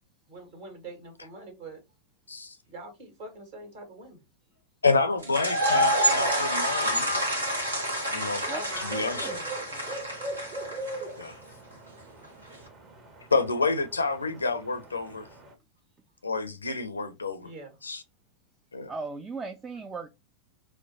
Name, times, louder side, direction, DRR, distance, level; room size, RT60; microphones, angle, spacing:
voice 1, 0.3-1.8 2.7-4.2 8.5-10.0 17.4-17.8, right 2 dB, 50° right, 1.5 m, -44 dB
voice 2, 4.8-7.2 8.1-8.5 8.8-9.3 11.2-11.4 13.3-15.3 16.2-17.5 17.8-18.0 18.7-18.9, left 4 dB, 80° left, 0.5 m, -28 dB
sound 1, 5.2-11.2, equal, 75° right, 1.0 m, -27 dB
sound 2, 5.4-15.5, right 2 dB, 35° right, 1.0 m, -43 dB
voice 3, 8.5-9.4 18.9-20.1, right 4 dB, 20° right, 0.3 m, -38 dB
4.3 x 2.2 x 2.7 m
figure-of-eight pair, 90°, 0 cm